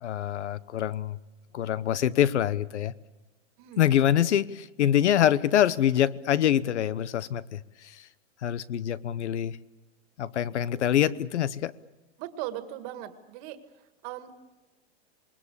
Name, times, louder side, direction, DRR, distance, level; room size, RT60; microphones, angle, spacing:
voice 1, 0.0-1.2 1.5-2.9 3.8-8.0 8.4-9.6 10.2-11.7, left 10 dB, 90° left, 1.1 m, -25 dB
voice 2, 3.6-3.9 12.2-14.3, right 13 dB, 35° right, 1.9 m, -39 dB
27.5 x 20.5 x 8.3 m
supercardioid pair, 165°, 34 cm